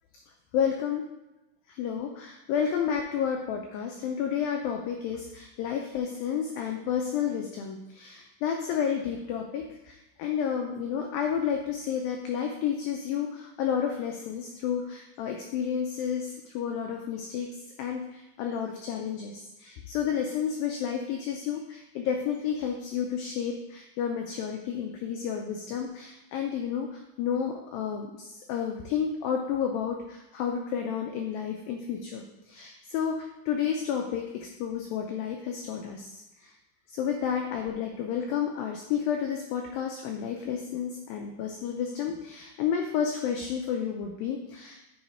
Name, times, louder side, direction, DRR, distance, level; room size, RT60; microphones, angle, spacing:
voice 1, 0.5-1.0 1.7-17.5 17.8-36.1 36.4-36.5 36.9-44.8, left 8 dB, 90° left, 2 dB, 2.0 m, -31 dB
8.8 x 3.7 x 4.2 m, 0.95 s
omnidirectional pair, 4.8 m